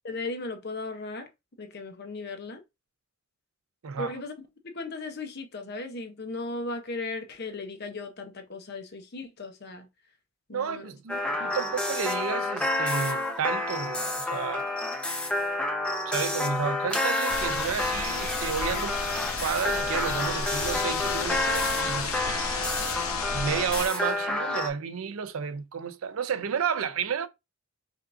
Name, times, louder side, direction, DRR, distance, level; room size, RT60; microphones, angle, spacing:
voice 1, 0.0-1.3 1.6-2.6 4.0-4.5 4.7-9.9 10.5-10.9 16.3-16.5, left 3 dB, 50° left, 0.8 m, -36 dB
voice 2, 10.5-14.7 16.1-22.4 23.3-27.3, right 7 dB, 85° right, 0.5 m, -32 dB
sound 1, 11.1-24.7, left 2 dB, 5° left, 0.6 m, -29 dB
sound 2, 17.3-23.9, left 5 dB, 85° left, 0.7 m, -33 dB
5.1 x 2.5 x 2.5 m
head